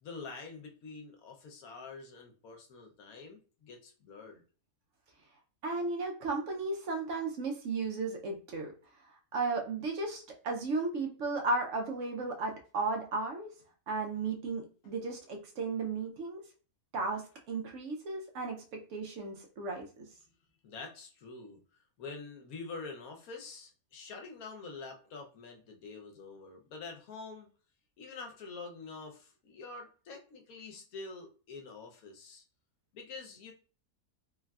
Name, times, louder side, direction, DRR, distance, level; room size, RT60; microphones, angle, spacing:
voice 1, 0.0-4.4 20.6-21.6 22.0-27.5 28.0-32.4 32.9-33.5, left 4 dB, 80° left, 3 dB, 1.1 m, -46 dB
voice 2, 5.6-8.7 9.3-13.5 13.9-16.4 16.9-20.1, right 3 dB, 65° right, 2 dB, 0.9 m, -35 dB
3.3 x 2.4 x 2.2 m, 0.37 s
omnidirectional pair, 1.5 m